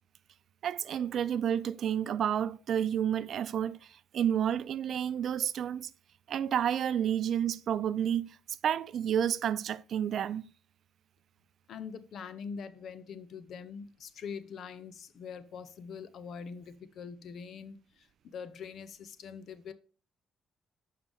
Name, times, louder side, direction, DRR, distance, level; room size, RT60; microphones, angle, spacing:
voice 1, 0.6-5.9 6.3-8.4 8.6-10.4, right 9 dB, 65° right, 0.4 m, -30 dB
voice 2, 11.7-19.7, left 6 dB, 65° left, 0.6 m, -43 dB
7.0 x 5.5 x 3.5 m
cardioid pair, 90°, 0 cm